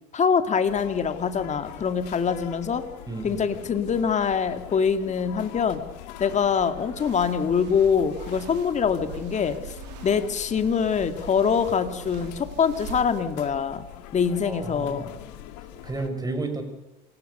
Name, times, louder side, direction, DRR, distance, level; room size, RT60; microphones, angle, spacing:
voice 1, 0.1-2.8 3.2-5.8 6.2-9.8 10.0-13.9 14.1-15.1, left 6 dB, 35° left, 9 dB, 2.4 m, -24 dB
sound 1, 0.6-16.1, left 13 dB, 80° left, 2.4 m, -43 dB
voice 2, 3.1-3.4 14.4-15.4 15.7-16.6, right 3 dB, 20° right, 6 dB, 6.7 m, -33 dB
sound 2, 6.9-13.2, right 11 dB, 90° right, 2.3 m, -43 dB
27.5 x 17.0 x 6.9 m, 0.97 s
supercardioid pair, 90°, 21 cm